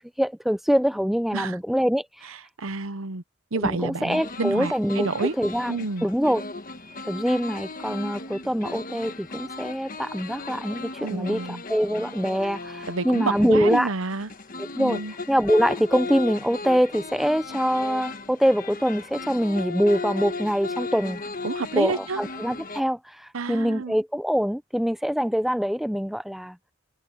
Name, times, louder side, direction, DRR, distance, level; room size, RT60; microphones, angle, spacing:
voice 1, 0.2-2.3 3.6-5.1 5.4-5.7 6.0-6.4 7.0-13.9 14.6-15.0 15.3-21.2 21.8-26.6, equal, ahead, 0.6 m, -24 dB
voice 2, 2.6-3.2 3.5-5.3 5.7-6.1 11.0-11.6 12.9-14.3 14.8-15.1 21.4-22.2 23.3-24.0, right 3 dB, 75° right, 0.9 m, -29 dB
sound 1, 4.1-22.8, left 3 dB, 40° left, 1.4 m, -36 dB
head